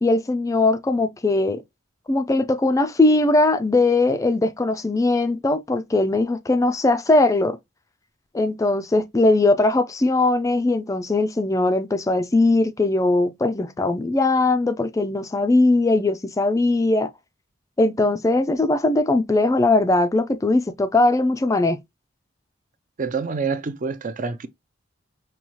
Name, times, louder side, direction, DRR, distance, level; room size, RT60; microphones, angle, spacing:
voice 1, 0.0-1.6 2.1-7.6 8.3-17.1 17.8-21.8, left 2 dB, 15° left, 0.3 m, -20 dB
voice 2, 23.0-24.5, right 4 dB, 40° right, 0.5 m, -27 dB
5.5 x 2.3 x 2.9 m
head